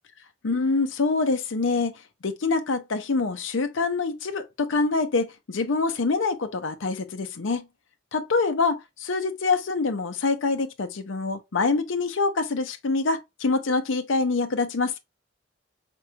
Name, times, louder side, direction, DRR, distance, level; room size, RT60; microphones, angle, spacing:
voice 1, 0.4-1.9 2.2-7.6 8.1-15.0, left 3 dB, 75° left, 0.6 m, -25 dB
5.1 x 3.0 x 2.2 m
head